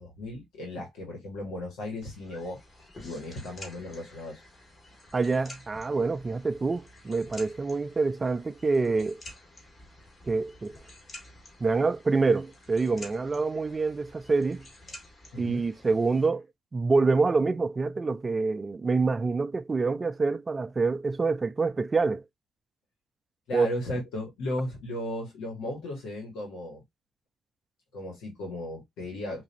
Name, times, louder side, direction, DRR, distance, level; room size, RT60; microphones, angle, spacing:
voice 1, 0.0-2.6 3.0-4.4 15.3-15.7 23.5-26.8 27.9-29.4, left 1 dB, 90° left, 1.6 m, -36 dB
sound 1, 2.0-16.3, left 1 dB, 35° left, 2.0 m, -50 dB
voice 2, 5.1-9.2 10.3-10.8 11.6-14.7 15.4-16.5 16.7-22.2 23.5-23.7, right 4 dB, 30° right, 0.3 m, -26 dB
4.8 x 2.6 x 2.8 m
cardioid pair, 90°, 0 cm